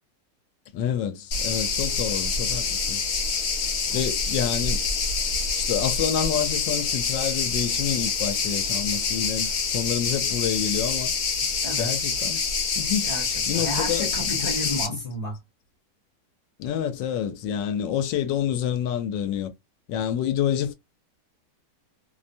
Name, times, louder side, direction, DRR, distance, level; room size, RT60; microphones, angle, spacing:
voice 1, 0.7-3.0 3.9-4.9 5.6-11.1 11.8-12.4 12.8-13.1 13.5-14.5 14.9-15.0 16.6-19.5 19.9-20.7, left 9 dB, 85° left, 1.3 m, -28 dB
sound 1, 1.3-14.9, left 5 dB, 60° left, 0.9 m, -26 dB
voice 2, 11.6-12.0 13.0-15.4, left 1 dB, 25° left, 0.9 m, -32 dB
3.1 x 2.1 x 2.5 m
omnidirectional pair, 1.9 m